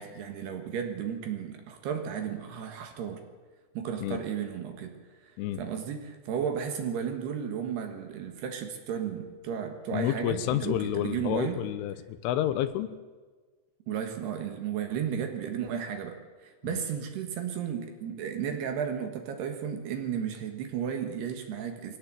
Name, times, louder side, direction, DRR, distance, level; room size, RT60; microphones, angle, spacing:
voice 1, 0.0-3.2 3.7-5.0 5.2-5.3 5.6-11.6 13.9-22.0, right 8 dB, 65° right, 5 dB, 3.3 m, -34 dB
voice 2, 9.9-12.9 16.6-16.8, left 12 dB, 85° left, 12 dB, 3.4 m, -29 dB
22.5 x 17.0 x 7.7 m, 1.4 s
omnidirectional pair, 5.6 m